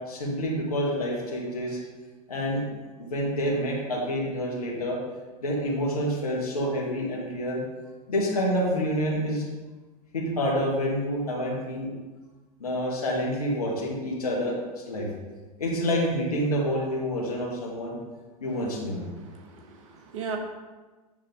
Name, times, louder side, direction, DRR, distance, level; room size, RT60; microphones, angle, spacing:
voice 1, 0.1-1.8 2.3-2.6 3.0-5.0 5.4-7.6 8.1-9.4 10.1-11.9 12.6-15.1 15.6-18.0 18.4-19.0, equal, 70° left, -1 dB, 2.0 m, -28 dB
voice 2, 19.2-20.4, right 6 dB, 55° right, 3 dB, 1.3 m, -37 dB
9.2 x 3.7 x 5.1 m, 1.2 s
figure-of-eight pair, 90°, 20 cm